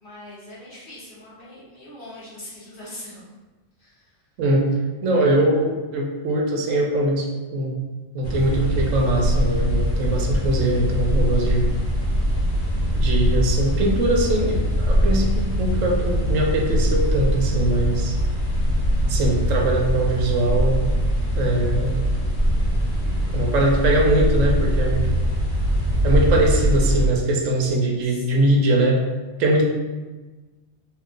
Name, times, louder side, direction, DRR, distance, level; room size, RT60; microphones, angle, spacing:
voice 1, 0.0-3.2 3.8-4.1 12.7-13.0 28.0-28.7, left 1 dB, 45° left, -8 dB, 1.1 m, -42 dB
voice 2, 5.0-7.7 8.1-11.7 12.9-18.2 19.1-20.9 21.4-22.1 23.3-25.1 26.0-29.0 29.4-29.6, right 1 dB, 85° right, 0 dB, 1.0 m, -21 dB
sound 1, 8.2-27.1, equal, 65° left, 1.3 m, -22 dB
2.9 x 2.4 x 3.6 m, 1.3 s
omnidirectional pair, 1.3 m